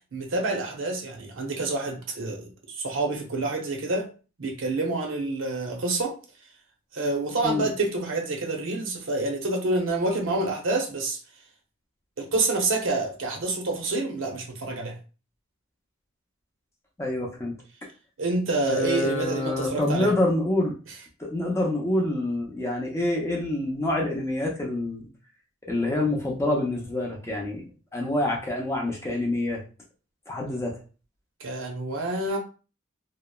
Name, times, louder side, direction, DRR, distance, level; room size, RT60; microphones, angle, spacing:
voice 1, 0.1-4.1 4.4-6.1 6.9-11.2 12.2-14.9 18.2-20.1 31.4-32.4, right 2 dB, 75° right, 2 dB, 0.7 m, -27 dB
voice 2, 17.0-17.5 18.7-20.7 21.2-25.1 25.7-29.6 30.3-30.8, left 1 dB, 15° left, -1 dB, 0.5 m, -27 dB
2.8 x 2.0 x 2.2 m, 0.35 s
head